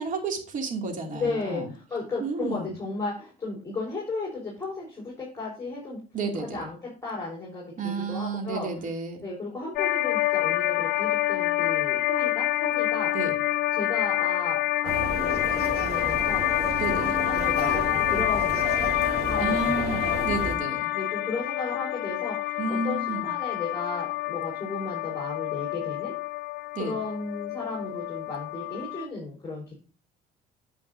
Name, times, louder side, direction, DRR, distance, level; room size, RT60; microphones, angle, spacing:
voice 1, 0.0-1.7 2.2-2.7 6.1-6.6 7.8-9.2 13.1-13.3 16.8-17.2 19.4-20.9 22.6-23.3 26.7-27.0, right 4 dB, 50° right, 3 dB, 2.6 m, -31 dB
voice 2, 1.1-6.0 6.3-8.9 9.2-13.1 13.7-15.5 15.7-16.4 16.9-18.7 19.3-20.2 20.9-26.1 26.8-29.7, left 3 dB, 15° left, -4 dB, 4.4 m, -35 dB
sound 1, 9.8-29.1, left 17 dB, 70° left, 0.5 m, -27 dB
sound 2, 14.8-20.6, right 4 dB, 70° right, 2.4 m, -33 dB
9.6 x 8.3 x 2.7 m, 0.37 s
cardioid pair, 110°, 17 cm